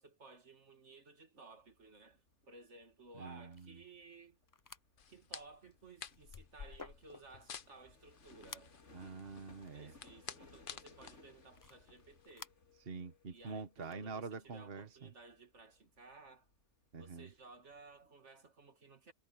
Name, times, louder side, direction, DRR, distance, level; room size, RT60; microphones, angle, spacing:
voice 1, 0.0-4.4 5.1-8.7 9.7-12.5 13.3-16.5 17.0-19.1, right 3 dB, 75° right, 2.4 m, -57 dB
sound 1, 1.5-18.1, left 3 dB, 85° left, 3.2 m, -65 dB
voice 2, 3.2-3.8 8.9-9.9 12.9-15.1 16.9-17.3, right 4 dB, 55° right, 1.5 m, -46 dB
sound 2, 3.5-3.7 4.5-4.8 5.4-5.5 5.9-7.5 8.0-8.2 8.5-8.8 9.6-9.9 11.5-12.5 13.8-14.0, left 4 dB, 30° left, 0.3 m, -54 dB
sound 3, 5.0-12.3, left 7 dB, 50° left, 0.9 m, -53 dB
omnidirectional pair, 1.2 m